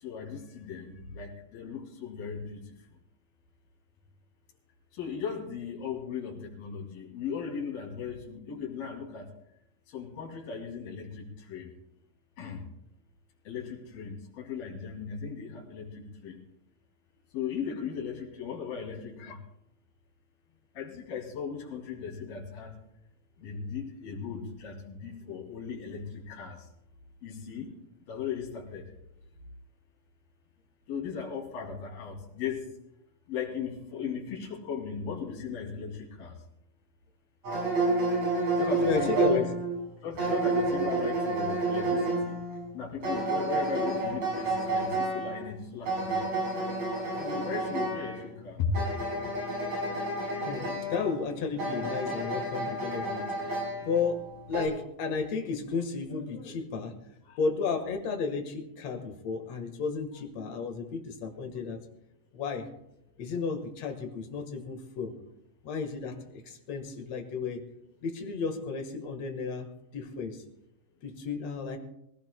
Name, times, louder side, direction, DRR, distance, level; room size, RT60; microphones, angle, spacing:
voice 1, 0.0-2.6 5.0-9.3 9.9-11.7 12.4-12.6 13.5-16.4 17.3-19.4 20.7-22.7 23.4-26.6 27.2-27.7 28.1-28.9 30.9-32.7 33.3-36.3 38.6-39.5 40.0-42.3 42.7-46.3 47.2-48.8, left 6 dB, 90° left, -2 dB, 4.5 m, -37 dB
sound 1, 37.4-54.7, right 2 dB, 50° right, 6.7 m, -30 dB
voice 2, 38.8-39.4 40.2-40.3 50.4-54.2 54.5-56.9 57.3-61.8 62.3-62.6 63.2-65.1 65.6-67.6 68.0-69.7 69.9-70.4 71.0-71.8, left 5 dB, 55° left, 5 dB, 2.3 m, -33 dB
24.5 x 16.0 x 2.2 m, 0.82 s
omnidirectional pair, 4.1 m